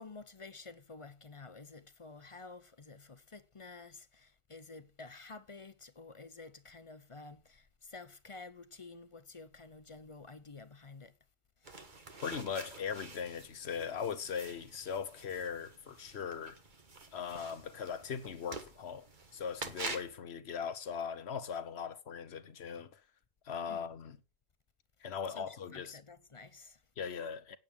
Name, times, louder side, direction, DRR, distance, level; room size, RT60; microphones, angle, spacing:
voice 1, 0.0-11.2 11.6-11.8 23.7-23.9 25.3-26.8, left 3 dB, 35° left, 0.8 m, -51 dB
sound 1, 11.6-20.2, right 3 dB, 45° right, 1.6 m, -47 dB
voice 2, 12.2-16.6 17.1-23.0 23.4-24.2 25.0-26.0 27.0-27.6, left 7 dB, 75° left, 1.2 m, -39 dB
9.2 x 7.8 x 7.2 m
omnidirectional pair, 1.1 m